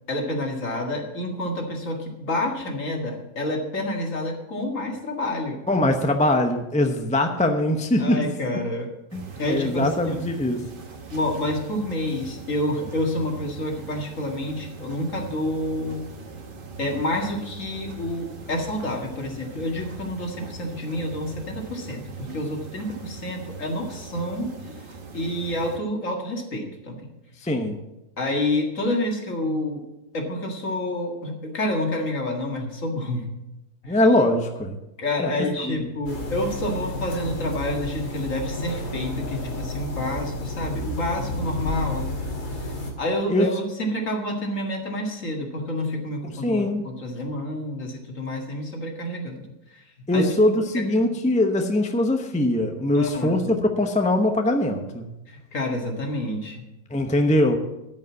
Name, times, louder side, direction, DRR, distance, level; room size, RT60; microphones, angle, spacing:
voice 1, 0.1-5.6 8.0-8.9 9.4-10.2 11.1-16.0 16.8-24.8 25.1-27.1 28.2-29.8 30.1-33.3 33.8-34.0 35.0-42.2 43.0-49.8 50.1-50.3 52.9-53.5 55.3-56.7, left 1 dB, 50° left, 1 dB, 2.2 m, -28 dB
voice 2, 5.7-8.2 9.1-9.2 9.5-10.6 27.4-27.8 33.9-34.8 35.2-35.3 35.6-35.8 43.3-43.5 46.2-46.8 50.1-55.1 56.9-57.6, left 1 dB, 5° left, 4 dB, 0.6 m, -22 dB
sound 1, 9.1-25.8, right 4 dB, 35° right, 1.2 m, -41 dB
sound 2, 36.1-42.9, left 1 dB, 70° left, 2.8 m, -31 dB
13.0 x 5.3 x 8.2 m, 0.94 s
omnidirectional pair, 1.7 m